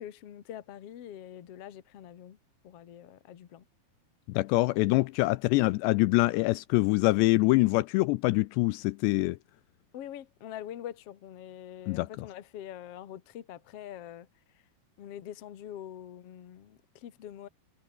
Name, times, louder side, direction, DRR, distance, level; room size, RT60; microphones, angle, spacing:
voice 1, 0.0-2.4 2.6-3.6 9.9-14.3 15.0-17.5, left 11 dB, 60° left, 1.6 m, -44 dB
voice 2, 4.3-9.4 11.9-12.3, left 21 dB, 80° left, 2.6 m, -25 dB
omnidirectional pair, 5.2 m